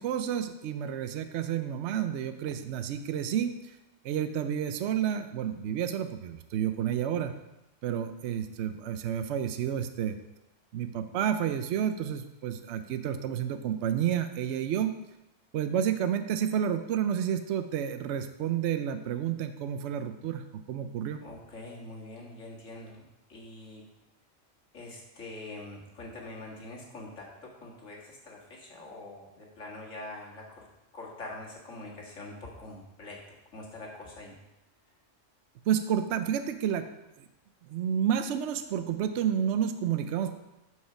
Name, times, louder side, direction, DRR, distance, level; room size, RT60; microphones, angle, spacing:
voice 1, 0.0-3.8 4.0-7.3 7.8-10.2 10.7-14.9 15.5-21.2 35.7-36.9 37.2-37.3 37.6-40.3, right 9 dB, 70° right, 8 dB, 0.8 m, -30 dB
voice 2, 21.2-23.0 23.3-23.8 24.7-30.7 30.9-33.2 33.5-34.4, left 2 dB, 75° left, -3 dB, 2.1 m, -44 dB
8.3 x 4.8 x 5.8 m, 0.94 s
omnidirectional pair, 1.3 m